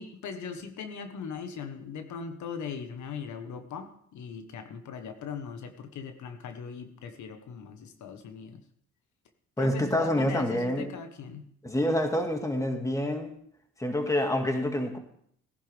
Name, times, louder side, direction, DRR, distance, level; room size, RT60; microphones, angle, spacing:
voice 1, 0.0-8.6 9.6-11.5, left 6 dB, 70° left, 7 dB, 1.4 m, -40 dB
voice 2, 9.6-10.9 11.6-13.3 13.8-15.0, left 1 dB, 10° left, 4 dB, 2.0 m, -27 dB
18.0 x 11.0 x 3.5 m, 0.65 s
cardioid pair, 90°, 30 cm